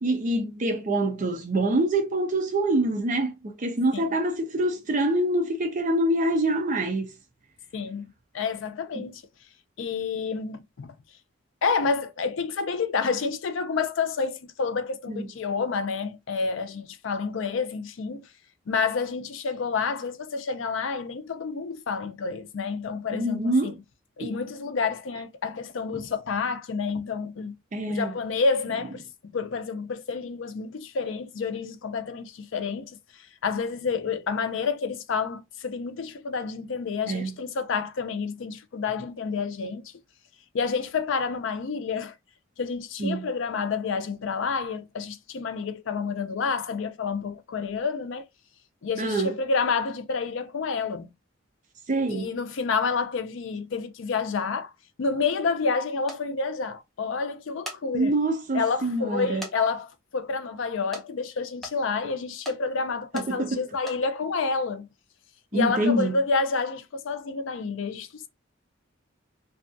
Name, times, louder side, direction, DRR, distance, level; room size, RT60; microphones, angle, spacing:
voice 1, 0.0-7.1 8.9-9.1 15.1-15.3 23.1-23.8 27.7-28.1 37.1-37.3 43.0-43.3 49.0-49.3 51.9-52.3 57.9-59.4 63.1-63.6 65.5-66.2, right 1 dB, 40° right, 0.5 m, -25 dB
voice 2, 7.7-9.2 9.8-10.9 11.6-18.3 18.7-23.8 24.2-27.5 27.9-33.0 33.4-39.9 40.5-42.1 42.6-48.2 48.8-51.1 52.1-54.7 55.0-58.2 58.5-64.9 65.5-68.3, left 5 dB, 70° left, 0.4 m, -29 dB
sound 1, 56.1-56.2 57.4-57.8 58.4-58.5 59.4-59.6 59.8-59.9 60.9-61.1 61.6-61.8 62.4-62.6 63.2-63.3 63.8-64.0, equal, ahead, 0.7 m, -38 dB
2.6 x 2.3 x 2.5 m
head